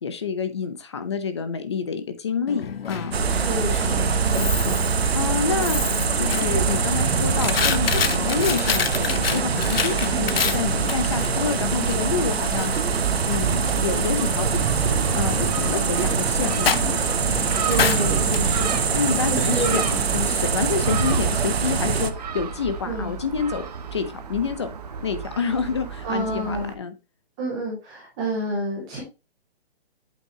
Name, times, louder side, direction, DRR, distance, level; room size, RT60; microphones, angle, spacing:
voice 1, 0.0-3.1 4.3-4.7 5.1-5.8 6.2-12.7 13.3-14.6 14.8-17.1 18.9-23.7 23.9-24.7 25.0-26.9, left 6 dB, 25° left, 10 dB, 0.8 m, -28 dB
Coin (dropping), 2.5-20.2, left 7 dB, 65° left, 1.1 m, -29 dB
sound 1, 3.1-22.1, right 6 dB, 70° right, 1.3 m, -23 dB
voice 2, 3.3-4.5 5.5-5.7 10.1-10.4 17.6-19.8 22.9-23.1 26.0-26.7 27.4-29.0, right 1 dB, 5° right, -4 dB, 0.7 m, -29 dB
Gull seagull, 12.1-26.7, right 6 dB, 40° right, 1.3 m, -35 dB
8.5 x 6.9 x 2.9 m, 0.28 s
hypercardioid pair, 180°, 32 cm